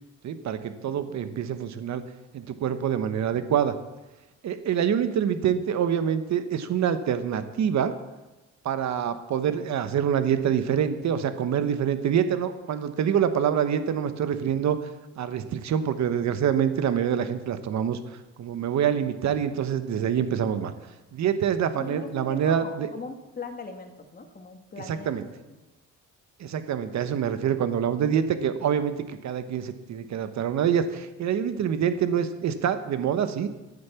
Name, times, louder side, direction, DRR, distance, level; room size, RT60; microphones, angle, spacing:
voice 1, 0.2-2.0 2.3-3.8 4.4-7.9 8.6-14.8 15.2-18.0 18.4-20.7 21.1-22.9 24.9-25.2 26.4-33.5, right 8 dB, 65° right, 11 dB, 1.1 m, -26 dB
voice 2, 0.9-1.5 21.8-25.6, left 3 dB, 30° left, 4 dB, 2.0 m, -41 dB
12.0 x 8.8 x 7.1 m, 1.1 s
cardioid pair, 90°, 30 cm